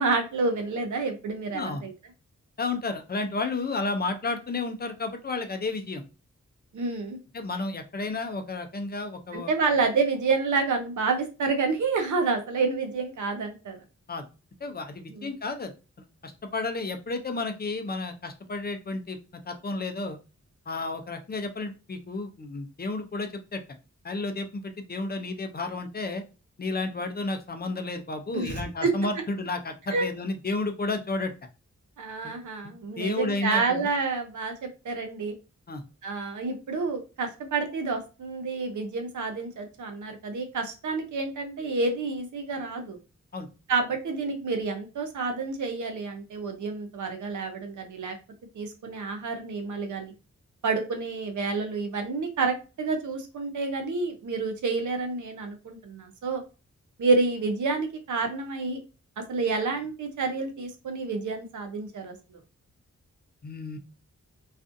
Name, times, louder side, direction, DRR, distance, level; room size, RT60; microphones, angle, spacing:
voice 1, 0.0-1.9 6.7-7.2 9.3-13.8 15.1-15.3 28.3-28.9 29.9-30.1 32.0-35.3 36.0-43.0 43.7-48.1 48.5-50.1 50.6-56.4 57.0-58.8 59.2-62.4, right 4 dB, 90° right, 5 dB, 0.6 m, -29 dB
voice 2, 2.6-6.0 7.3-9.5 14.1-14.2 14.6-15.7 16.2-19.2 19.5-20.2 20.7-23.6 24.0-26.2 26.6-31.3 32.2-32.4 32.6-33.9 35.7-35.8 43.3-43.5 63.4-63.8, left 3 dB, 35° left, 6 dB, 0.4 m, -32 dB
2.4 x 2.4 x 2.5 m, 0.31 s
wide cardioid pair, 90°, 29 cm